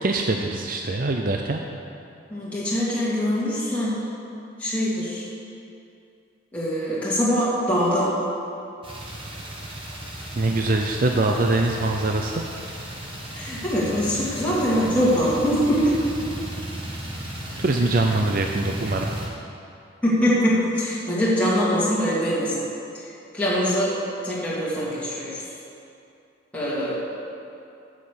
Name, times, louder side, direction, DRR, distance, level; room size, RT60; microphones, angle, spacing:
voice 1, 0.0-1.6 10.4-12.4 17.6-19.1, right 2 dB, 45° right, 2 dB, 0.6 m, -23 dB
voice 2, 2.3-4.0 4.6-5.3 6.5-8.1 13.3-16.0 20.0-22.6 22.9-23.1 23.3-24.0 24.2-25.4 26.5-26.9, equal, 5° left, -9 dB, 2.3 m, -23 dB
sound 1, 8.8-19.3, right 1 dB, 25° right, 1.5 m, -35 dB
9.8 x 7.5 x 6.7 m, 2.6 s
head